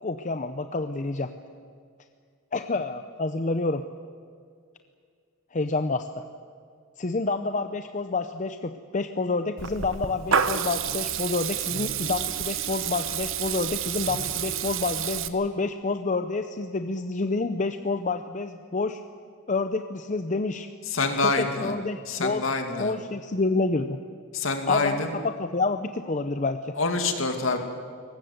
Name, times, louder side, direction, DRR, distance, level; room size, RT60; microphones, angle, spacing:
voice 1, 0.0-1.3 2.5-3.8 5.5-6.2 7.0-19.0 19.5-20.7 21.2-22.5 22.8-24.0 24.7-26.8, left 3 dB, 35° left, 8 dB, 0.7 m, -28 dB
Water tap faucet / Liquid, 9.6-15.3, right 8 dB, 60° right, 1.1 m, -29 dB
voice 2, 20.9-21.7 22.1-23.0 24.3-25.1 26.8-27.6, left 3 dB, 60° left, 5 dB, 2.5 m, -26 dB
22.5 x 19.5 x 8.1 m, 2.2 s
head